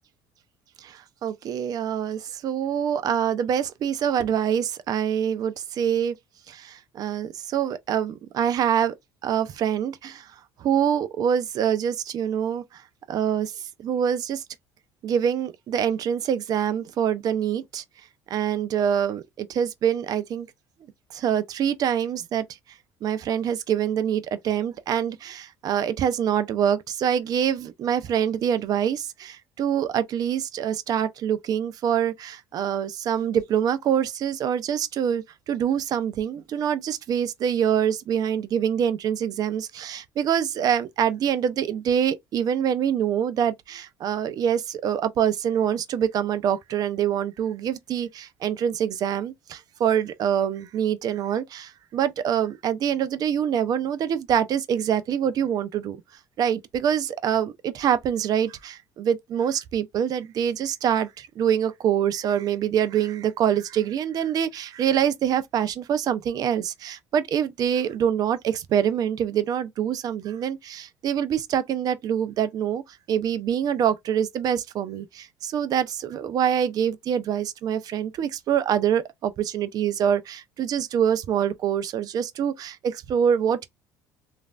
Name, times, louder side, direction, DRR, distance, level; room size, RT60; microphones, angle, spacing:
voice 1, 0.8-6.1 6.5-8.9 9.2-10.3 10.6-12.8 13.1-14.4 15.0-17.8 18.3-20.5 21.1-22.4 23.0-56.0 56.4-83.7, right 9 dB, 55° right, 0.5 m, -25 dB
3.1 x 2.5 x 2.3 m
supercardioid pair, 85°, 8 cm